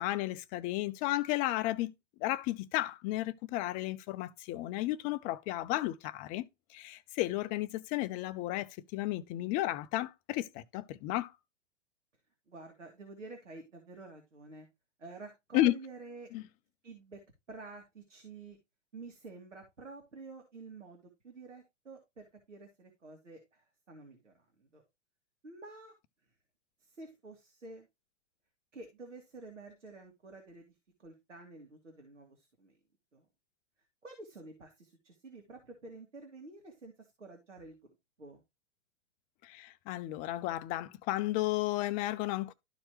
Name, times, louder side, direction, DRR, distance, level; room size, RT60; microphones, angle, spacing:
voice 1, 0.0-1.9 2.2-6.4 6.7-11.3 15.5-15.7 16.3-16.4 39.4-42.5, left 16 dB, 25° left, 0.5 m, -33 dB
voice 2, 12.5-14.7 15.0-16.3 16.8-17.2 17.5-18.6 18.9-24.8 25.4-25.9 26.8-27.9 28.7-30.7 31.0-32.8 33.1-33.3 34.0-37.8 38.2-38.4, right 3 dB, 80° right, 2.5 m, -50 dB
13.0 x 4.4 x 3.2 m
figure-of-eight pair, 110°, 36 cm